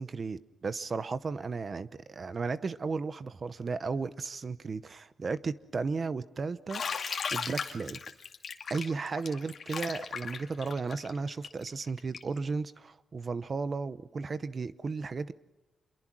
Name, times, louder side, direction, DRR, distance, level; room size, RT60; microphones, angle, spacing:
voice 1, 0.0-6.8 7.3-8.0 8.7-15.3, right 4 dB, 35° right, 0.8 m, -34 dB
Bathtub (filling or washing), 6.7-12.4, left 6 dB, 50° left, 2.2 m, -37 dB
27.5 x 22.5 x 6.1 m
wide cardioid pair, 170°, 0 cm